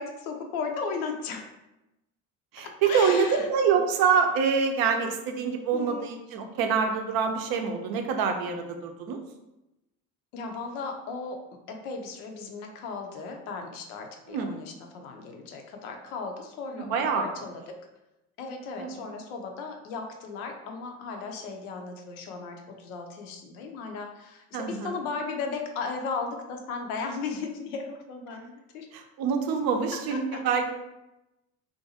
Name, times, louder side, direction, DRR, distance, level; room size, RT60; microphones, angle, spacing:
voice 1, 0.0-1.4 2.8-3.5 5.7-6.1 10.3-11.4 11.7-17.6 18.4-28.5 28.7-28.9 30.3-30.4, left 4 dB, 85° left, 3 dB, 0.6 m, -36 dB
voice 2, 2.5-9.2 14.3-14.6 16.8-17.2 18.8-19.1 24.5-24.9 28.9-30.7, right 6 dB, 60° right, 5 dB, 0.5 m, -26 dB
2.5 x 2.2 x 2.8 m, 0.94 s
hypercardioid pair, 70°, 42 cm